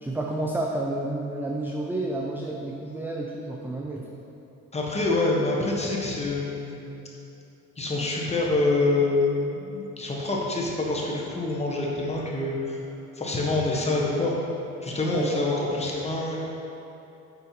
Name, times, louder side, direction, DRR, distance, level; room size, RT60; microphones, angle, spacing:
voice 1, 0.0-4.1 15.0-15.3, right 2 dB, 5° right, -2 dB, 0.4 m, -30 dB
voice 2, 4.7-6.9 7.8-12.8 13.2-14.3 14.8-16.4, left 2 dB, 20° left, -3 dB, 1.1 m, -26 dB
5.5 x 4.3 x 4.3 m, 2.9 s
cardioid pair, 90°, 30 cm